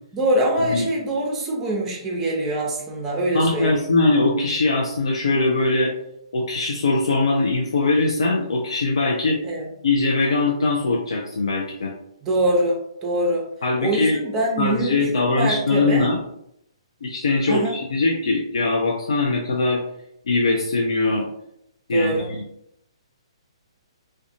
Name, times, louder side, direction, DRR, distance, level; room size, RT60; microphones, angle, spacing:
voice 1, 0.1-3.8 9.4-9.7 12.2-13.5 13.8-16.1 17.5-17.7 21.9-22.3, right 1 dB, 15° right, -1 dB, 0.6 m, -24 dB
voice 2, 3.3-5.9 6.3-9.4 9.8-11.9 13.6-14.2 14.6-16.2 17.0-19.8 20.3-21.3 21.9-22.4, left 3 dB, 65° left, -1 dB, 0.4 m, -21 dB
2.4 x 2.2 x 2.6 m, 0.76 s
figure-of-eight pair, 125°, 3 cm